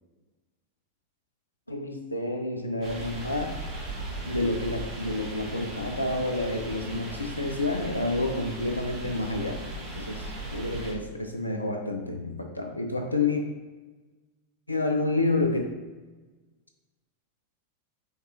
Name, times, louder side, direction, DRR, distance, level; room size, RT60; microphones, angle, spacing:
voice 1, 1.7-3.6 4.3-13.4 14.7-15.6, left 2 dB, 85° left, 3 dB, 0.4 m, -29 dB
sound 1, 2.8-10.9, right 2 dB, 40° right, 1.0 m, -37 dB
5.1 x 3.0 x 2.7 m, 1.3 s
figure-of-eight pair, 90°, 0 cm